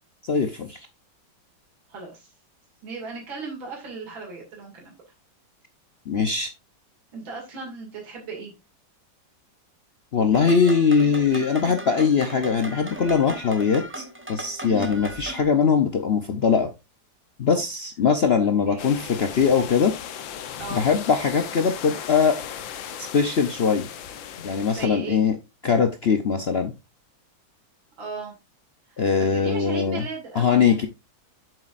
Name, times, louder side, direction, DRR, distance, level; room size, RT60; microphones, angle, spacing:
voice 1, 0.2-0.9 6.1-6.5 10.1-16.7 17.4-19.9 20.7-22.4 23.0-23.9 24.4-25.4 25.6-26.7 29.0-30.1 30.3-30.9, left 6 dB, 60° left, 7 dB, 0.6 m, -21 dB
voice 2, 1.9-2.3 2.8-4.9 7.1-8.5 14.6-14.9 18.4-19.0 20.6-20.9 24.7-25.2 28.0-28.3 28.9-30.9, right 4 dB, 85° right, 0 dB, 3.2 m, -37 dB
sound 1, 10.3-15.4, right 1 dB, 20° right, 0.3 m, -37 dB
sound 2, 18.8-24.9, left 9 dB, 75° left, 1.6 m, -37 dB
8.1 x 7.5 x 2.5 m, 0.25 s
omnidirectional pair, 2.1 m